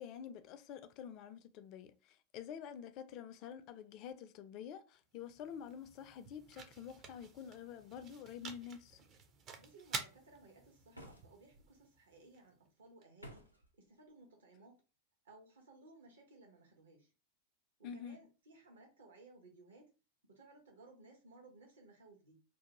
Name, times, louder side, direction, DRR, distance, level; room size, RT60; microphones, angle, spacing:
voice 1, 0.0-9.0 17.8-18.2, left 8 dB, 40° left, 0.4 m, -48 dB
sound 1, 5.0-13.0, right 5 dB, 30° right, 0.5 m, -50 dB
voice 2, 9.6-14.8 15.2-17.1 17.9-19.9 20.3-22.4, right 2 dB, 65° right, 0.9 m, -60 dB
sound 2, 10.9-11.7 13.2-13.7, equal, 90° right, 0.5 m, -54 dB
2.6 x 2.2 x 2.9 m
figure-of-eight pair, 90°, 0 cm